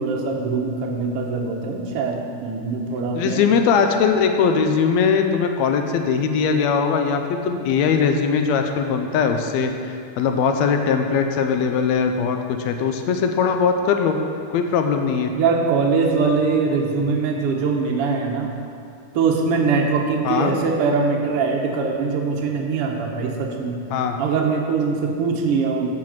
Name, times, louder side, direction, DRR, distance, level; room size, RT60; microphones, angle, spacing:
voice 1, 0.0-3.4 15.3-18.5 19.1-23.8 24.2-25.9, right 4 dB, 65° right, 0 dB, 1.6 m, -22 dB
voice 2, 3.1-14.2 14.5-15.3 20.2-20.5 23.9-24.2, left 6 dB, 80° left, 5 dB, 1.6 m, -20 dB
7.6 x 6.0 x 7.3 m, 2.4 s
omnidirectional pair, 3.6 m